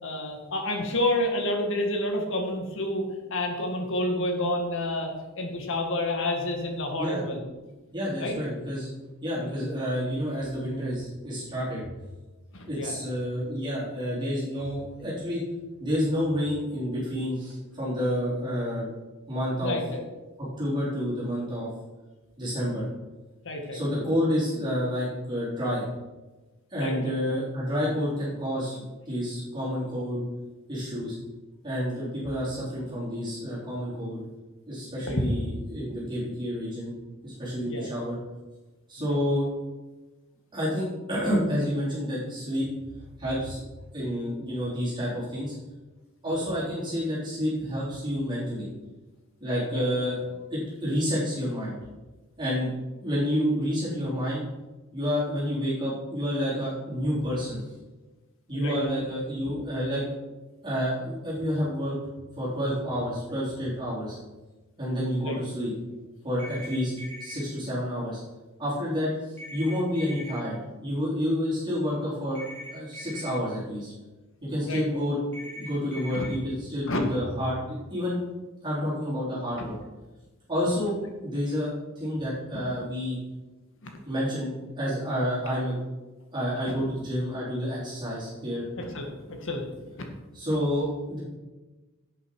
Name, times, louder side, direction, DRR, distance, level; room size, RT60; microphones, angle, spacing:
voice 1, 0.0-3.0 3.3-7.4 8.2-8.4 12.5-12.9 19.6-20.0 23.4-24.0 26.7-27.2 35.1-35.2 36.0-36.1 37.7-37.9 39.0-39.2 46.3-46.4 49.7-49.8 58.5-58.8 65.2-65.4 74.7-74.8 76.1-76.3 76.9-77.0 79.6-79.7 82.5-82.6 83.8-83.9 88.8-90.1, left 1 dB, 65° left, 3 dB, 1.8 m, -30 dB
voice 2, 7.9-8.9 9.2-11.9 12.7-15.4 15.8-18.9 19.3-19.8 20.6-21.7 22.4-22.9 23.7-25.8 26.7-30.2 30.7-31.2 31.6-34.2 34.7-36.9 37.2-38.2 38.9-39.5 40.5-42.7 43.2-43.6 43.9-45.5 46.2-48.7 49.4-50.2 50.5-51.8 52.4-52.7 53.0-54.4 54.9-57.6 58.5-60.0 60.6-61.9 62.4-64.2 64.8-65.7 66.2-66.9 67.2-68.2 68.6-73.9 74.4-75.2 75.5-77.6 77.9-78.2 78.6-79.8 80.5-83.2 84.1-85.8 86.3-88.6 90.3-91.2, equal, 20° right, -9 dB, 4.0 m, -29 dB
sound 1, 66.4-67.4 69.4-70.4 72.4-73.3 75.3-76.3, left 1 dB, 10° left, 3.4 m, -41 dB
11.5 x 8.1 x 4.8 m, 1.2 s
head